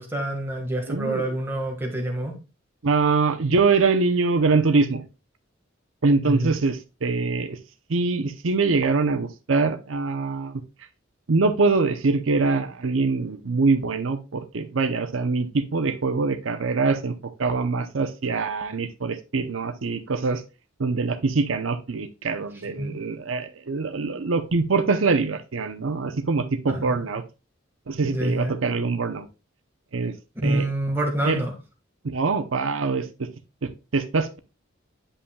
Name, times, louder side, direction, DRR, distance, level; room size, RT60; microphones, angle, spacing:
voice 1, 0.0-2.3 6.2-6.5 22.8-23.0 26.7-27.0 28.0-28.6 30.3-31.5, right 1 dB, 10° right, -1 dB, 1.6 m, -27 dB
voice 2, 0.9-1.4 2.8-5.0 6.0-7.6 7.9-10.6 11.3-20.4 20.8-27.2 27.9-29.3 29.9-30.1 30.4-30.6 31.2-31.4 32.0-33.3 33.6-34.4, right 4 dB, 85° right, 9 dB, 0.7 m, -24 dB
8.6 x 5.5 x 2.3 m, 0.29 s
head